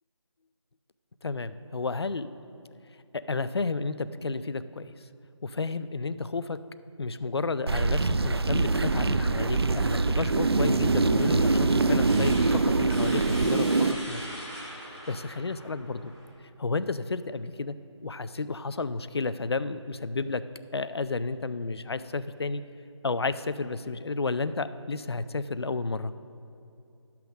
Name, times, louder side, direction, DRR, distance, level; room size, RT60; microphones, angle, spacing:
voice 1, 1.2-2.3 3.1-5.1 5.4-6.6 7.0-14.3 14.8-16.1 16.4-17.7 18.0-20.4 20.7-22.6 23.0-26.1, left 3 dB, 55° left, 14 dB, 0.4 m, -32 dB
sound 1, 7.7-13.9, right 3 dB, 55° right, 0.4 m, -24 dB
sound 2, 9.8-16.3, equal, 10° right, 0.7 m, -43 dB
12.0 x 5.8 x 6.2 m, 2.6 s
figure-of-eight pair, 175°, 16 cm